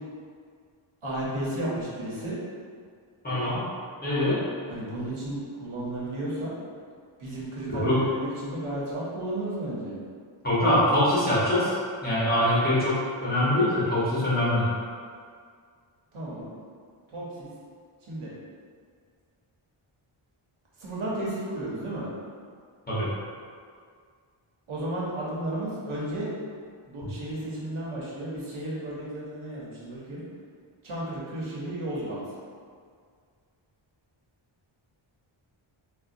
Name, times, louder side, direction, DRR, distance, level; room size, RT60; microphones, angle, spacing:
voice 1, 1.0-2.4 4.7-6.6 7.2-10.0 16.1-16.5 17.1-17.5 18.1-18.3 20.8-22.1 24.7-26.3 26.9-30.2 30.8-32.2, right 1 dB, 75° right, -6 dB, 0.9 m, -33 dB
voice 2, 3.2-3.6 4.0-4.4 7.7-8.0 10.4-11.7 12.0-14.7 22.9-23.1, left 1 dB, 20° left, -10 dB, 0.8 m, -23 dB
3.8 x 2.1 x 2.5 m, 2.1 s
wide cardioid pair, 140°, 49 cm